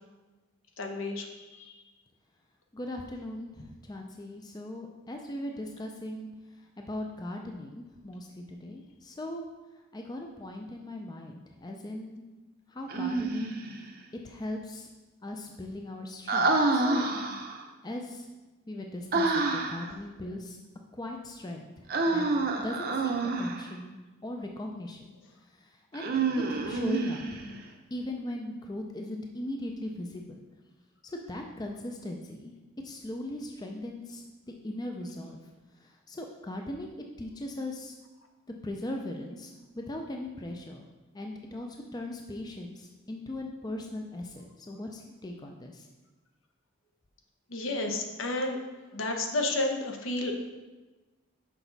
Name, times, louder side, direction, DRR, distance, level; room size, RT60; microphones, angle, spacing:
voice 1, 0.8-1.8 47.5-48.6 48.9-50.4, left 2 dB, 75° left, 3 dB, 0.9 m, -31 dB
voice 2, 2.7-6.3 6.6-9.4 9.9-12.2 12.7-13.5 14.2-14.9 15.2-17.1 17.8-18.3 18.7-20.6 20.9-22.3 22.6-23.1 23.4-25.1 25.5-27.4 27.9-30.4 31.0-32.5 32.8-34.2 34.6-35.4 35.8-38.0 38.6-40.8 41.1-45.9, left 1 dB, 20° left, 2 dB, 0.4 m, -39 dB
Human voice, 12.9-13.8 16.3-17.6 19.1-19.9 21.9-23.7 25.9-27.5, right 3 dB, 45° right, 0.7 m, -28 dB
6.0 x 5.8 x 4.0 m, 1.2 s
head